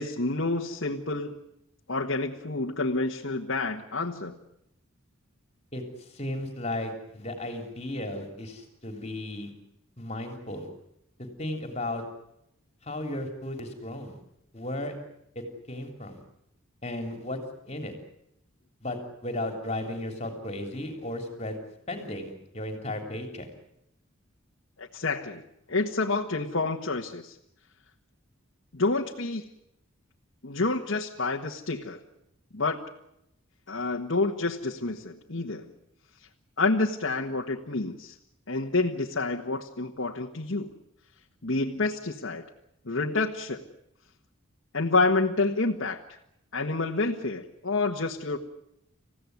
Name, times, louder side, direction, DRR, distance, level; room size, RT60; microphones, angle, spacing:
voice 1, 0.0-1.4 1.9-4.3 24.8-25.4 25.7-27.4 28.7-29.5 30.4-32.0 32.5-32.8 33.7-35.7 36.6-38.1 38.5-40.7 41.4-42.4 42.8-43.7 44.7-46.0 46.5-48.4, left 3 dB, 65° left, 1 dB, 1.5 m, -28 dB
voice 2, 5.7-9.5 10.0-10.7 11.2-12.0 12.8-14.2 14.5-14.9 15.4-16.2 16.8-17.4 17.6-17.9 18.8-21.6 21.9-23.5, left 1 dB, 30° left, 4 dB, 3.4 m, -35 dB
28.0 x 16.0 x 9.5 m, 0.80 s
head